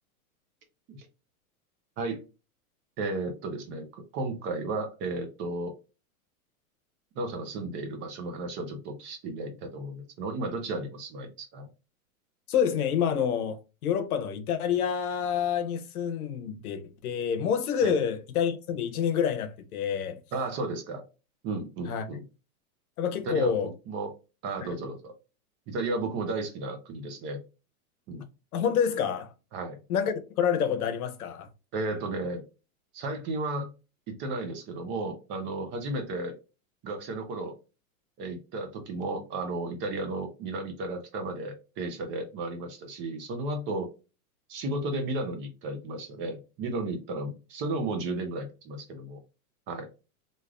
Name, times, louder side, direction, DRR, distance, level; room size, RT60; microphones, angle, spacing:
voice 1, 3.0-5.7 7.2-11.7 17.8-18.0 20.3-21.0 21.4-22.2 23.3-23.5 23.9-24.1 24.4-25.1 25.7-27.4 28.1-28.3 29.5-29.8 31.7-32.4 32.9-33.7 34.1-36.3 36.8-37.6 38.2-43.9 44.5-49.2 49.7-49.9, right 2 dB, 25° right, 0.5 m, -33 dB
voice 2, 12.5-13.6 13.8-20.2 21.9-22.1 23.0-23.7 24.7-24.8 28.5-29.3 29.9-31.5, left 8 dB, 85° left, 0.8 m, -28 dB
3.4 x 2.5 x 2.4 m
supercardioid pair, 140°, 43 cm